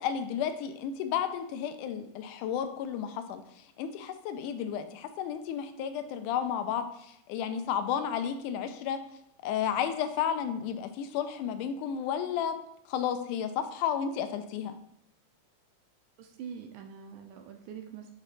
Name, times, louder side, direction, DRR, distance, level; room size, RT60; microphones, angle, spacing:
voice 1, 0.0-3.4 3.8-9.0 9.4-12.6 12.9-14.7, left 8 dB, 80° left, 9 dB, 2.0 m, -32 dB
voice 2, 16.2-18.1, right 7 dB, 80° right, 4 dB, 2.0 m, -44 dB
7.7 x 3.0 x 4.1 m, 0.78 s
omnidirectional pair, 3.7 m